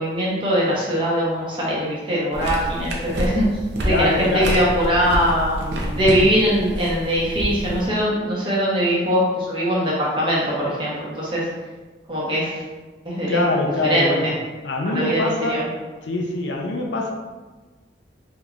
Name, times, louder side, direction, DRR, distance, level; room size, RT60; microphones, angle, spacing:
voice 1, 0.0-3.5 3.8-5.6 5.9-11.5 12.1-12.6 13.0-13.4 13.9-14.3 14.8-15.7, equal, 25° right, -6 dB, 0.9 m, -21 dB
sound 1, 2.3-7.9, equal, 75° right, 0.6 m, -28 dB
voice 2, 3.8-4.6 5.6-6.3 13.3-14.3 14.6-15.7 16.0-17.1, left 2 dB, 85° left, 1 dB, 0.6 m, -24 dB
3.6 x 3.0 x 2.4 m, 1.3 s
head